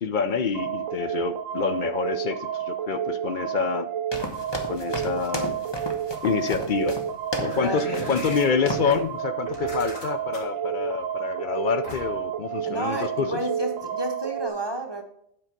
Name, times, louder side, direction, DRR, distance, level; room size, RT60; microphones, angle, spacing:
voice 1, 0.0-3.9 4.7-5.5 6.2-7.0 7.4-13.4, left 6 dB, 60° left, 11 dB, 0.5 m, -27 dB
sound 1, 0.5-14.5, right 9 dB, 80° right, 1.0 m, -31 dB
sound 2, 4.1-7.6 7.9-8.4 8.7-8.9, left 1 dB, 20° left, 0.9 m, -33 dB
sound 3, 7.4-9.0 9.5-10.6 11.8-12.3, left 2 dB, 80° left, 2.6 m, -37 dB
voice 2, 7.5-8.0 12.6-15.0, right 1 dB, 25° right, 3 dB, 0.7 m, -31 dB
8.8 x 4.7 x 5.1 m, 0.74 s
omnidirectional pair, 1.4 m